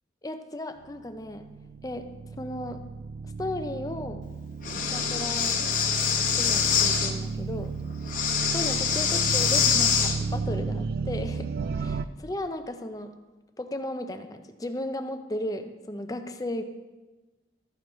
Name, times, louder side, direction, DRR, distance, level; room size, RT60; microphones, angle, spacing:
voice 1, 0.2-1.5 1.8-2.1 2.4-2.8 3.4-4.3 4.9-5.6 6.4-7.7 8.5-11.5 11.8-13.1 13.6-16.6, left 1 dB, 20° left, 7 dB, 0.6 m, -35 dB
sound 1, 1.2-12.0, right 4 dB, 55° right, 0.3 m, -33 dB
Breathing, 4.6-7.1 8.1-10.2, left 7 dB, 50° left, 1.0 m, -25 dB
12.5 x 9.0 x 3.1 m, 1.2 s
head